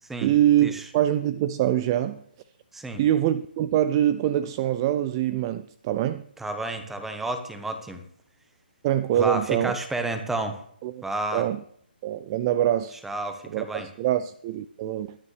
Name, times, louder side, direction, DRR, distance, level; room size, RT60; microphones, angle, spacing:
voice 1, 0.2-2.2 3.0-6.2 8.8-9.8 10.8-11.0 11.3-11.6 12.0-13.0 13.5-15.2, right 12 dB, 25° right, 0.4 m, -24 dB
voice 2, 6.4-8.0 9.1-10.6 11.0-11.4 13.0-13.9, right 2 dB, 5° right, 1.1 m, -31 dB
21.5 x 9.5 x 3.3 m
figure-of-eight pair, 145°, 6 cm